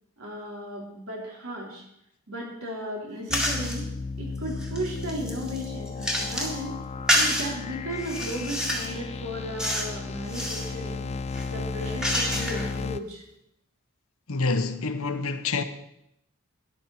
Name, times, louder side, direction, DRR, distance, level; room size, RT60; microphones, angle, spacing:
voice 1, 0.2-1.8 2.3-3.9 4.2-6.7 7.1-11.1 11.5-13.2, equal, 70° right, 4.1 m, -35 dB
sound 1, 3.3-13.0, left 4 dB, 30° left, 0.4 m, -34 dB
sound 2, 3.3-3.8 4.4-6.6 7.1-7.5 8.0-9.0 9.6-9.9 10.2-10.7 11.3-12.7, equal, 5° right, 2.0 m, -28 dB
voice 2, 14.3-15.6, left 3 dB, 70° left, 1.0 m, -27 dB
13.0 x 11.5 x 4.3 m
head